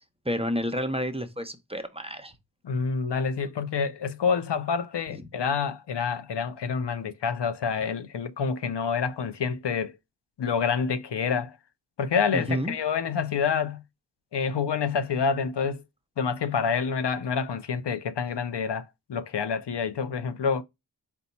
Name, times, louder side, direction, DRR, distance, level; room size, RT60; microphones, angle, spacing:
voice 1, 0.2-2.3 5.1-5.2 12.3-12.7, equal, 15° right, 0.7 m, -30 dB
voice 2, 2.6-9.9 10.4-11.5 12.0-13.8 14.3-15.8 16.2-18.8 19.1-20.6, left 6 dB, 70° left, 0.6 m, -27 dB
4.2 x 2.2 x 4.0 m
wide cardioid pair, 50°, 43 cm